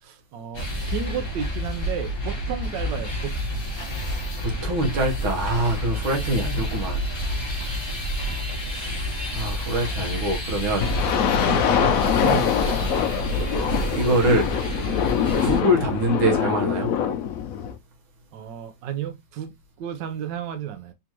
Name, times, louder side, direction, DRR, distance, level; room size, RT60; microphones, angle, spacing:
voice 1, 0.0-3.6 18.3-20.9, right 9 dB, 70° right, 1.3 m, -33 dB
sound 1, 0.5-15.6, equal, 20° left, 0.7 m, -29 dB
voice 2, 3.8-7.0 8.7-9.0 9.3-10.9 11.6-11.8 12.1-12.5 13.9-14.5 15.4-16.9, right 1 dB, 90° right, 2.0 m, -25 dB
sound 2, 10.8-17.7, left 8 dB, 85° left, 0.7 m, -24 dB
3.8 x 3.4 x 2.9 m
omnidirectional pair, 2.2 m